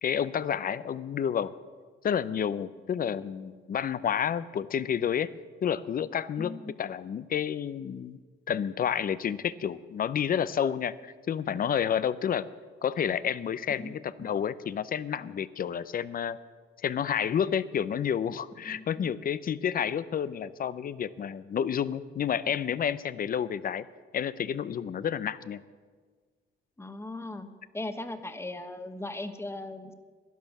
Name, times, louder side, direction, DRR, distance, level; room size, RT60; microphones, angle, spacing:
voice 1, 0.0-1.5 2.0-5.3 5.6-6.5 6.8-8.2 8.5-12.5 12.8-16.4 16.8-23.9 24.1-25.6, left 8 dB, 45° left, 16 dB, 0.6 m, -30 dB
voice 2, 6.4-6.7 13.8-13.9 14.2-14.3 18.6-19.1 26.8-27.5 27.7-29.9, left 2 dB, 15° left, 9 dB, 1.1 m, -38 dB
12.0 x 11.0 x 7.2 m, 1.5 s
cardioid pair, 90°, 20 cm